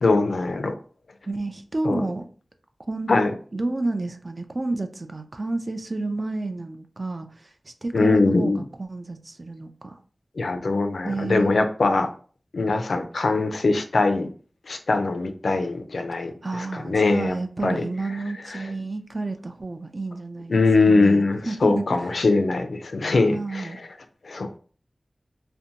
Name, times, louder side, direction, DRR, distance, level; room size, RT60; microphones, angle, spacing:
voice 1, 0.0-0.7 1.8-2.0 3.1-3.3 7.9-8.6 10.4-12.1 12.5-14.3 14.7-17.4 17.6-17.8 18.5-18.7 20.5-23.7 24.2-24.5, left 3 dB, 85° left, 6 dB, 0.4 m, -22 dB
voice 2, 1.3-2.2 2.9-3.1 3.5-10.0 11.0-11.5 16.4-21.9 23.3-23.8, right 2 dB, 40° right, 7 dB, 0.3 m, -30 dB
2.5 x 2.1 x 2.7 m, 0.41 s
wide cardioid pair, 80°, 0 cm